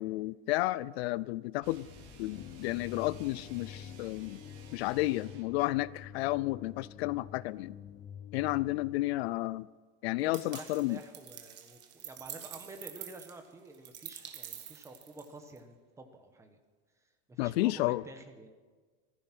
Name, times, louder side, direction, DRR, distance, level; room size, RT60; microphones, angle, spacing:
voice 1, 0.0-1.9 2.2-4.4 4.7-7.7 8.3-9.7 10.0-11.0 17.4-18.0, left 18 dB, 60° left, 0.5 m, -32 dB
sound 1, 1.6-9.5, left 8 dB, 25° left, 0.8 m, -48 dB
sound 2, 1.6-5.6, right 6 dB, 50° right, 3.0 m, -56 dB
voice 2, 10.1-16.6 17.3-18.5, right 2 dB, 10° right, 1.1 m, -50 dB
sound 3, 10.3-15.6, right 10 dB, 30° right, 1.4 m, -47 dB
14.5 x 14.5 x 6.1 m
supercardioid pair, 170°, 36 cm